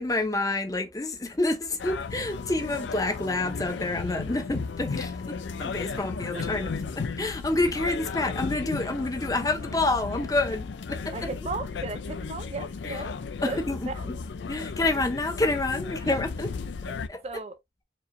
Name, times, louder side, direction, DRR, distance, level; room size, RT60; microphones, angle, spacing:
voice 1, 0.0-11.3 12.8-13.1 13.4-14.2 14.5-16.5 16.8-17.2, left 2 dB, 20° left, 0.6 m, -28 dB
sound 1, 1.8-17.1, left 4 dB, 80° left, 0.4 m, -34 dB
voice 2, 11.1-14.1 16.0-16.2 17.2-17.6, right 3 dB, 35° right, 0.4 m, -36 dB
4.7 x 2.7 x 2.5 m
head